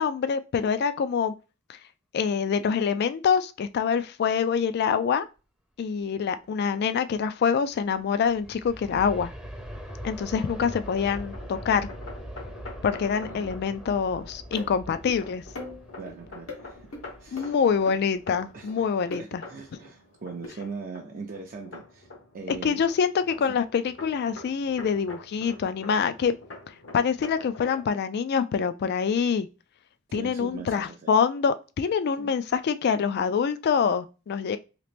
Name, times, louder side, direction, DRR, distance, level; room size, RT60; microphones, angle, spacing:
voice 1, 0.0-1.3 1.7-1.8 2.1-5.3 5.8-9.3 10.0-11.9 12.8-15.4 17.3-19.4 22.5-26.4 26.7-29.5 30.1-34.6, left 6 dB, 50° left, 0.3 m, -25 dB
Aircraft, 7.7-18.5 19.0-19.1, equal, 5° right, 0.6 m, -42 dB
sound 1, 9.4-27.9, left 2 dB, 70° left, 0.9 m, -46 dB
voice 2, 13.2-13.6 16.0-16.9 17.2-17.6 18.5-22.1 22.3-22.8 23.5-23.6 30.1-31.2 32.2-32.3, right 4 dB, 45° right, 0.5 m, -41 dB
sound 2, 14.6-14.7 15.1-15.2 15.6-16.1 16.5-16.6 16.9-17.0 17.4-17.5 17.9-18.0 19.1-19.3 20.4-20.5, left 2 dB, 85° left, 1.2 m, -38 dB
2.9 x 2.9 x 3.3 m
head